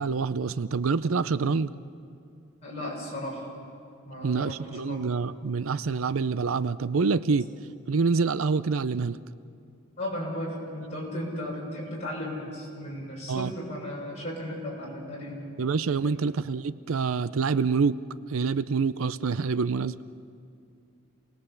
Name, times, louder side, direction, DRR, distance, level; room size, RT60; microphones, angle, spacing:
voice 1, 0.0-1.7 4.2-7.5 7.9-9.2 13.3-13.5 15.6-18.0 18.3-20.0, right 4 dB, 80° right, 15 dB, 0.6 m, -26 dB
voice 2, 2.6-3.5 4.0-5.0 10.0-15.5 16.1-16.2, left 1 dB, 30° left, -4 dB, 6.8 m, -35 dB
28.0 x 19.5 x 7.1 m, 2.5 s
head